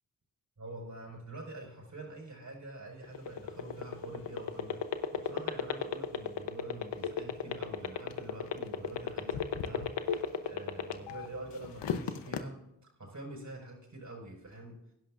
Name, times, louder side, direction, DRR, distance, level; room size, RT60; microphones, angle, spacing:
voice 1, 0.6-12.6 13.0-14.8, right 2 dB, 45° right, -1 dB, 5.3 m, -46 dB
sound 1, 3.0-11.3 11.6-12.4, left 8 dB, 85° left, 0.9 m, -33 dB
20.5 x 11.0 x 2.5 m, 0.83 s
cardioid pair, 45°, 41 cm